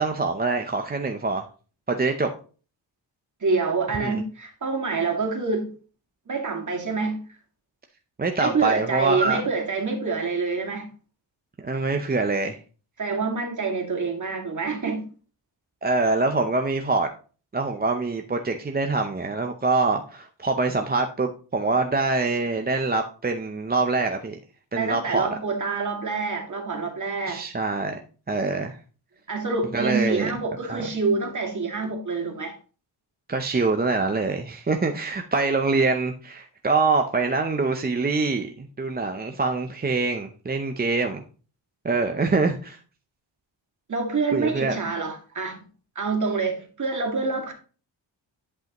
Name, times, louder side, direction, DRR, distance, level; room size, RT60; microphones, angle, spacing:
voice 1, 0.0-1.4 1.9-2.3 4.0-4.2 8.2-9.4 11.6-12.6 15.8-17.1 17.5-24.4 24.7-25.3 27.3-28.0 28.3-28.8 29.7-30.3 30.7-30.8 33.3-41.2 41.8-42.8 44.3-44.7, right 3 dB, 20° right, 0.6 m, -24 dB
voice 2, 3.4-5.7 6.3-7.2 8.4-10.9 13.0-15.1 24.8-27.4 29.3-32.5 43.9-45.6 46.0-47.5, right 4 dB, 40° right, 2.1 m, -26 dB
10.5 x 5.5 x 2.9 m
wide cardioid pair, 115°, 46 cm